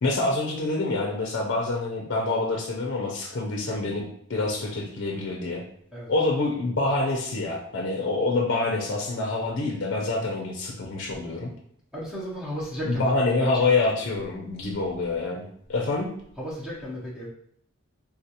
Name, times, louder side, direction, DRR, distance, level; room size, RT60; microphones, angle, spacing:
voice 1, 0.0-4.0 4.3-5.6 6.1-11.5 12.9-16.1, left 3 dB, 60° left, 0 dB, 0.5 m, -26 dB
voice 2, 11.9-14.1 16.4-17.3, equal, 5° right, -6 dB, 0.7 m, -34 dB
3.5 x 2.4 x 2.8 m, 0.66 s
head